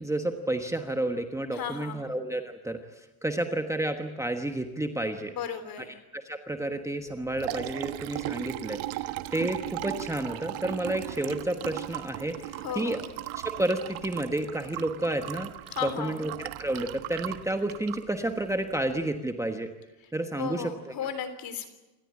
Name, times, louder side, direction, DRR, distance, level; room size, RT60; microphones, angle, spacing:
voice 1, 0.0-5.3 6.1-8.8 9.3-13.0 13.3-15.5 15.8-19.7 20.1-20.9, right 1 dB, 5° right, 5 dB, 1.2 m, -31 dB
voice 2, 1.5-2.0 5.4-6.0 12.6-13.0 15.7-16.1 20.4-21.7, left 8 dB, 45° left, 11 dB, 3.5 m, -35 dB
Liquid, 7.1-19.0, right 16 dB, 75° right, 1.3 m, -38 dB
28.0 x 13.5 x 9.8 m, 1.1 s
cardioid pair, 140°, 47 cm